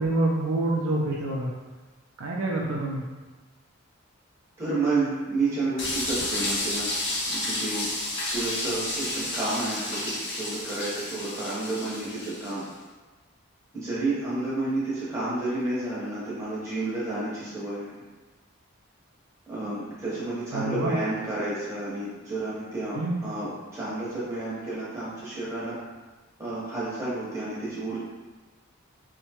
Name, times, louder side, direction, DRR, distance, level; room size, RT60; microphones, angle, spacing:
voice 1, 0.0-1.5 2.2-3.0 20.5-20.9 22.9-23.2, right 2 dB, 75° right, -1 dB, 0.4 m, -27 dB
voice 2, 4.6-6.9 7.2-7.9 8.3-12.6 13.7-18.0 19.5-25.8 26.4-28.0, right 2 dB, 15° right, -10 dB, 0.8 m, -30 dB
sound 1, 5.8-12.6, left 1 dB, 55° left, 0.6 m, -31 dB
2.7 x 2.1 x 2.8 m, 1.3 s
head